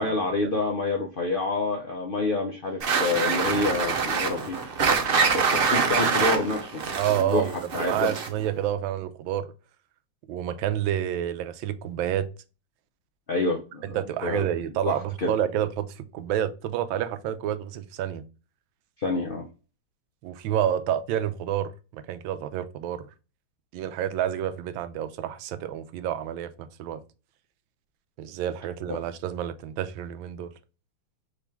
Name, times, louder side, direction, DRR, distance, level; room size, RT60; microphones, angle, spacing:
voice 1, 0.0-4.6 5.3-6.8 7.1-8.1 13.3-14.0 14.2-14.4 14.8-15.3 19.0-19.5, left 3 dB, 75° left, 0.5 m, -27 dB
sound 1, 2.8-8.5, right 5 dB, 55° right, 0.6 m, -25 dB
voice 2, 6.9-9.5 10.3-12.3 13.9-18.2 20.2-23.1 23.7-27.0 28.2-30.5, right 10 dB, 85° right, 1.4 m, -29 dB
5.0 x 3.0 x 3.4 m
omnidirectional pair, 2.1 m